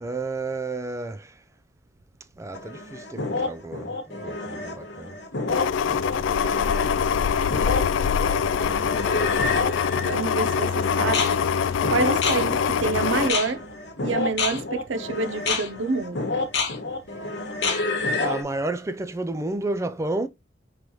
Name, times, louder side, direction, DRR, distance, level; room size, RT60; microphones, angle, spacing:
voice 1, 0.0-1.4 2.4-5.2 18.2-20.3, right 2 dB, 15° right, 0.3 m, -31 dB
sound 1, 2.5-18.4, left 3 dB, 65° left, 1.2 m, -29 dB
sound 2, 5.5-13.3, left 7 dB, 85° left, 0.3 m, -24 dB
voice 2, 9.9-11.5 11.8-13.7 14.0-16.3, right 4 dB, 90° right, 0.6 m, -27 dB
5.2 x 3.2 x 3.0 m
head